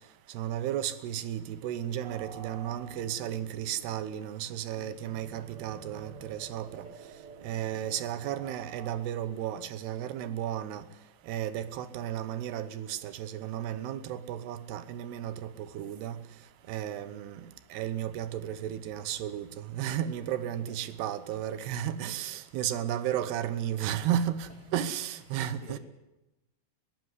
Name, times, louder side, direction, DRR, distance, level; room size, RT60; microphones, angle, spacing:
voice 1, 0.3-6.9 7.4-10.9 11.3-16.2 16.7-25.8, right 10 dB, 75° right, 3.0 m, -34 dB
sound 1, 2.0-9.0, right 7 dB, 55° right, 2.3 m, -49 dB
voice 2, 4.8-5.2 6.7-7.0 16.9-17.2 19.3-19.4 20.5-21.0 22.0-22.1 22.5-23.2 24.5-24.9 25.3-25.8, left 6 dB, 70° left, 4.7 m, -54 dB
21.0 x 16.0 x 9.7 m
omnidirectional pair, 4.8 m